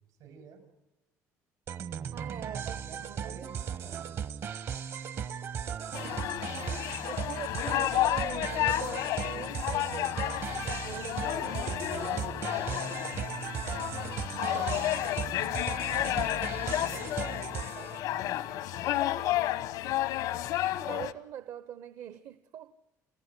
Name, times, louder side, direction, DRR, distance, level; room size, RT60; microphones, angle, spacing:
voice 1, 0.1-0.6 1.9-2.0 2.8-4.4 11.9-13.0 16.0-16.3 16.6-19.1, right 6 dB, 90° right, 5 dB, 6.7 m, -51 dB
sound 1, 1.7-18.0, right 8 dB, 45° right, 0.8 m, -37 dB
voice 2, 2.1-3.5 5.9-6.4 6.7-12.3 14.3-15.1 20.9-22.7, right 10 dB, 65° right, 12 dB, 0.9 m, -43 dB
sound 2, 5.9-21.1, left 14 dB, 85° left, 1.0 m, -31 dB
29.5 x 16.5 x 9.8 m, 1.0 s
cardioid pair, 140°, 6 cm